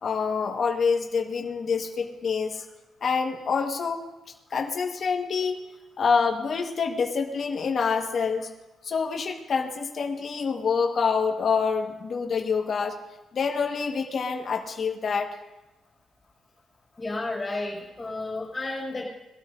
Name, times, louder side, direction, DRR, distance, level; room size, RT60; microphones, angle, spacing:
voice 1, 0.0-2.6 3.0-4.0 4.5-5.6 6.0-8.5 8.8-12.9 13.3-15.4, left 5 dB, 40° left, 2 dB, 1.4 m, -26 dB
voice 2, 17.0-19.0, left 2 dB, 15° left, -4 dB, 5.5 m, -32 dB
22.0 x 13.0 x 2.6 m, 1.0 s
cardioid pair, 175°, 0 cm